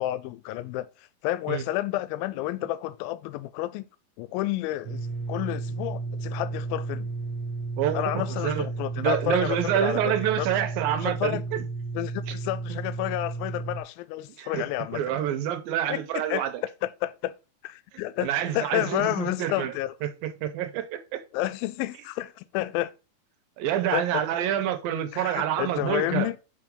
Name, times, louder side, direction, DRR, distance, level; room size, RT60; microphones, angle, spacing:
voice 1, 0.0-3.9 4.2-7.1 7.9-10.6 11.0-11.4 11.9-15.3 15.9-17.3 17.6-19.9 21.3-22.9 23.9-24.2 25.1-26.4, left 15 dB, 90° left, 2.4 m, -30 dB
sound 1, 4.8-13.8, right 3 dB, 60° right, 1.8 m, -33 dB
voice 2, 7.8-8.7 9.0-11.6 14.4-16.6 18.2-19.7 20.0-21.2 23.6-26.3, right 11 dB, 85° right, 2.6 m, -27 dB
5.3 x 4.9 x 5.2 m
omnidirectional pair, 4.1 m